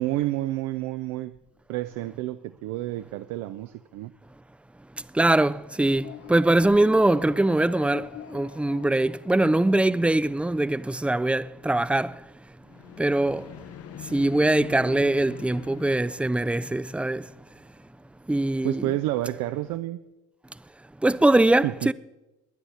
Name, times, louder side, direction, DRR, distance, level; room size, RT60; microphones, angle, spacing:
voice 1, 0.0-1.4 1.7-4.1 18.6-20.0 21.6-21.9, right 15 dB, 70° right, 0.6 m, -29 dB
voice 2, 5.2-12.1 13.0-13.4 14.1-17.2 18.3-18.9 21.0-21.9, right 2 dB, 5° right, 0.4 m, -22 dB
sound 1, 5.7-10.0 12.6-17.6, left 11 dB, 50° left, 0.7 m, -44 dB
21.0 x 10.0 x 4.2 m
hypercardioid pair, 60°, 31 cm